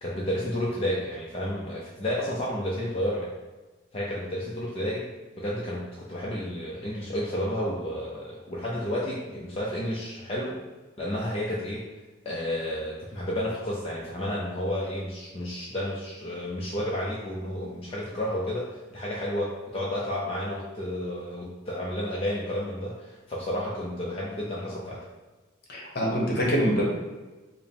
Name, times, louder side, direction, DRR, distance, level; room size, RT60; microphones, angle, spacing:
voice 1, 0.0-3.3 3.9-5.1 5.4-10.6 11.0-11.9 12.2-25.0, left 1 dB, 30° left, -5 dB, 0.5 m, -31 dB
voice 2, 25.7-26.9, equal, 55° left, -3 dB, 1.0 m, -25 dB
4.8 x 2.1 x 3.4 m, 1.2 s
head